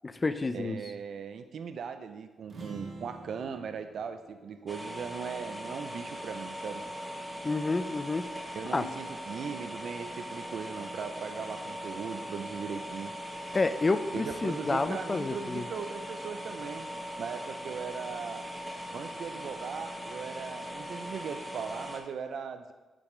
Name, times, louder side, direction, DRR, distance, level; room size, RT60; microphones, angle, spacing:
voice 1, 0.0-0.8 7.4-8.3 8.7-8.9 13.5-15.6, left 3 dB, 30° left, 11 dB, 0.4 m, -29 dB
voice 2, 0.5-6.8 8.5-13.1 14.1-16.9 17.2-18.5 18.9-22.7, right 6 dB, 70° right, 9 dB, 0.4 m, -39 dB
sound 1, 2.4-6.2, right 3 dB, 55° right, 1.4 m, -49 dB
sound 2, 4.7-22.0, equal, 15° right, 0.9 m, -40 dB
8.4 x 5.0 x 3.2 m, 1.2 s
cardioid pair, 80°, 0 cm